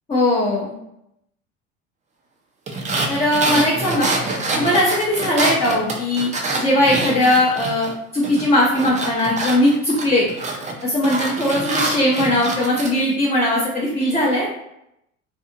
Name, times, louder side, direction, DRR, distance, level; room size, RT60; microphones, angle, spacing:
voice 1, 0.1-0.7 3.1-4.1 4.5-6.3 6.6-10.3 10.8-14.5, left 1 dB, 15° left, -6 dB, 0.7 m, -19 dB
sound 1, 2.7-7.9 8.2-12.9, right 2 dB, 20° right, 0.5 m, -26 dB
2.5 x 2.4 x 2.7 m, 0.80 s
hypercardioid pair, 75°, 38 cm